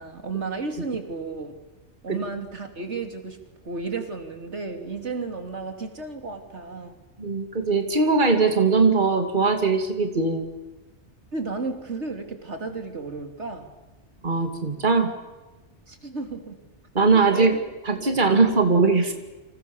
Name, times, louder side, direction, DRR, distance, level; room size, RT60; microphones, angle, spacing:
voice 1, 0.0-1.6 2.0-7.0 11.3-13.7 15.9-16.6 17.0-17.6 18.3-18.4, right 4 dB, 75° right, 5 dB, 3.2 m, -33 dB
voice 2, 7.2-10.5 14.2-15.1 16.9-17.5 17.9-19.1, right 4 dB, 45° right, 5 dB, 2.6 m, -20 dB
29.5 x 27.0 x 7.1 m, 1.1 s
omnidirectional pair, 1.2 m